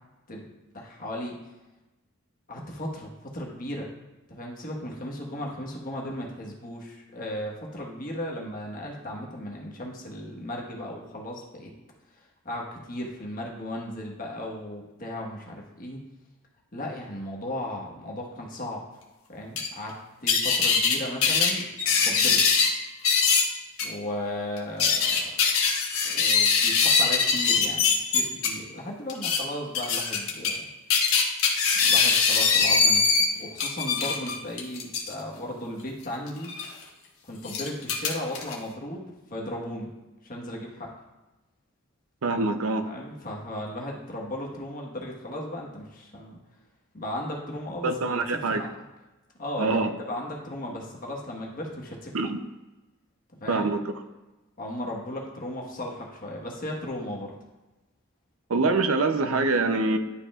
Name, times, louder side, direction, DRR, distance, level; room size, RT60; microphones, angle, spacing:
voice 1, 0.3-1.4 2.5-3.9 4.3-11.7 12.1-16.0 16.7-18.8 19.3-19.9 20.2-22.4 23.8-25.2 26.0-30.7 31.8-33.1 33.4-36.9 37.3-39.9 40.2-40.9 42.8-46.4 46.9-48.7 49.4-52.2 53.4-53.7 54.6-57.4, left 1 dB, 40° left, -1 dB, 1.3 m, -36 dB
sound 1, 19.6-19.7 20.3-21.0 21.2-22.7 23.0-23.4 23.8-23.9 24.6-28.5 29.1-29.4 29.7-30.6 30.9-33.3 33.6-35.1 36.4-36.7 37.4-38.5, left 5 dB, 75° left, 1.3 m, -22 dB
voice 2, 42.2-42.9 47.8-48.6 49.6-49.9 52.1-52.4 53.5-53.8 58.5-60.0, right 3 dB, 75° right, 8 dB, 0.6 m, -24 dB
11.5 x 4.9 x 2.4 m, 1.1 s
head